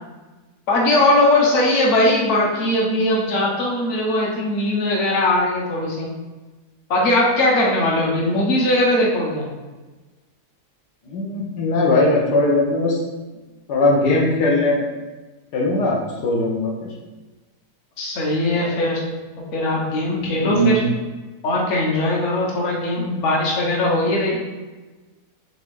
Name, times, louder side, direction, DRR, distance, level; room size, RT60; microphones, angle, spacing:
voice 1, 0.7-6.1 6.9-9.5 18.0-19.0 19.5-20.8 21.4-24.4, left 1 dB, 50° left, -2 dB, 1.1 m, -19 dB
voice 2, 11.1-13.0 13.7-14.8 15.5-16.9 20.4-20.8, left 1 dB, 80° left, -2 dB, 1.4 m, -19 dB
4.2 x 3.6 x 3.4 m, 1.2 s
omnidirectional pair, 1.8 m